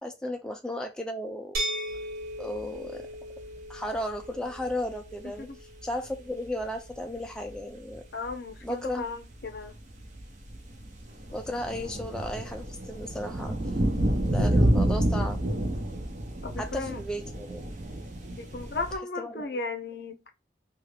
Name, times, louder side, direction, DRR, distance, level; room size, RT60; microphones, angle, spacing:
voice 1, 0.0-1.6 2.4-3.1 3.7-8.0 8.6-9.1 11.3-13.6 14.3-15.4 16.6-17.6 19.2-19.5, left 1 dB, 5° left, 0.3 m, -35 dB
sound 1, 1.5-7.3, right 1 dB, 60° right, 1.2 m, -38 dB
sound 2, 1.9-2.0 2.3-2.7 3.1-5.2 5.8-5.9 6.1-6.2 6.4-6.6 7.2-7.9 8.2-19.0, right 1 dB, 45° right, 0.7 m, -29 dB
voice 2, 8.1-9.7 16.4-17.0 18.3-20.2, left 3 dB, 70° left, 0.6 m, -35 dB
2.8 x 2.4 x 3.2 m
head